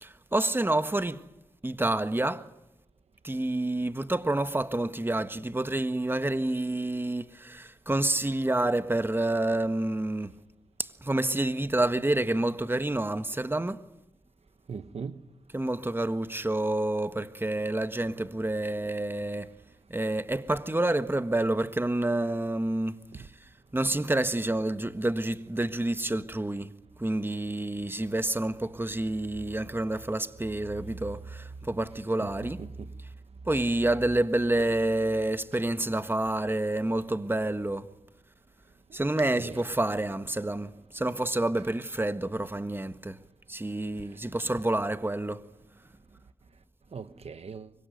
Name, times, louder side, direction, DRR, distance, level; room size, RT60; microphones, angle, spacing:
voice 1, 0.0-1.3 1.6-2.5 3.2-10.3 10.8-13.8 15.5-19.5 19.9-23.3 23.7-26.7 27.0-32.6 33.4-37.9 38.9-43.2 43.5-45.4, right 1 dB, 20° right, 1.5 m, -28 dB
voice 2, 14.7-15.2 23.1-23.3 32.2-32.3 32.6-32.9 39.4-39.7 46.9-47.7, right 5 dB, 80° right, 1.2 m, -39 dB
25.0 x 22.5 x 9.4 m
cardioid pair, 50°, 10 cm